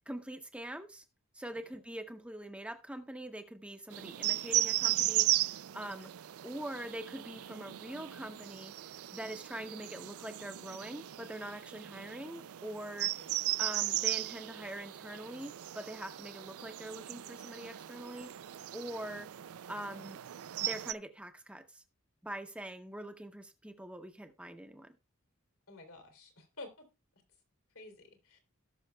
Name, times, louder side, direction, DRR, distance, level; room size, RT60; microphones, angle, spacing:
voice 1, 0.1-1.0 1.3-6.1 6.4-13.1 13.6-18.5 18.7-19.3 19.7-20.2 20.6-21.8 22.2-24.9, right 1 dB, 5° right, 6 dB, 0.7 m, -44 dB
sound 1, 3.9-20.9, right 15 dB, 85° right, 0.4 m, -36 dB
voice 2, 25.7-26.9 27.7-28.4, left 2 dB, 80° left, 5 dB, 3.0 m, -51 dB
18.0 x 6.3 x 2.2 m, 0.28 s
head